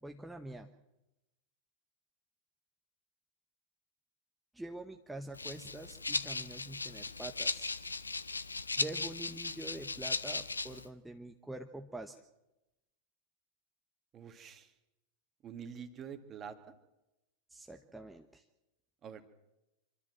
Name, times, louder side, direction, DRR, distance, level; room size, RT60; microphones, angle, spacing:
voice 1, 0.0-0.7 4.5-7.7 8.8-12.2 17.5-18.4, right 2 dB, 5° right, 4 dB, 1.0 m, -45 dB
Rattle (instrument), 5.3-10.9, left 3 dB, 80° left, 0.9 m, -37 dB
voice 2, 14.1-14.7 15.4-16.6 19.0-19.3, right 7 dB, 30° right, 8 dB, 2.0 m, -46 dB
25.5 x 13.5 x 7.6 m, 0.96 s
figure-of-eight pair, 90°, 0 cm